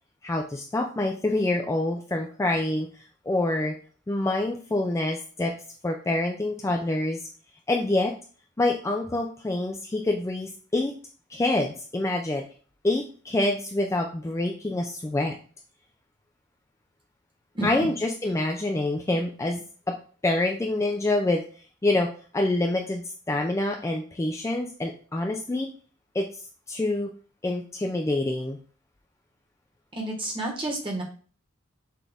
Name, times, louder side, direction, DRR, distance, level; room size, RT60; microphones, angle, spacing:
voice 1, 0.2-2.9 3.3-3.8 4.1-5.6 5.8-7.2 7.7-8.1 8.6-11.0 11.3-12.4 12.8-15.4 17.6-20.0 20.2-21.4 21.8-25.7 26.1-26.3 26.7-27.1 27.4-28.6, left 2 dB, 15° left, 2 dB, 0.3 m, -26 dB
voice 2, 17.5-17.9 29.9-31.0, right 2 dB, 25° right, 0 dB, 1.2 m, -30 dB
5.9 x 2.5 x 3.4 m, 0.41 s
head